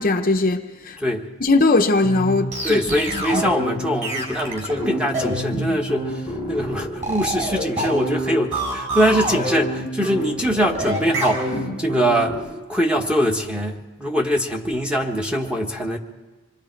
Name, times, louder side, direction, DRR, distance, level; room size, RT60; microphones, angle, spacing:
voice 1, 0.0-1.0 1.4-2.8 3.1-3.4, left 2 dB, 40° left, 0.8 m, -19 dB
voice 2, 1.0-1.3 2.6-12.4 12.7-16.0, equal, 5° right, 1.3 m, -23 dB
sound 1, 2.0-12.4, right 1 dB, 30° right, 6.0 m, -26 dB
26.5 x 21.5 x 4.6 m
head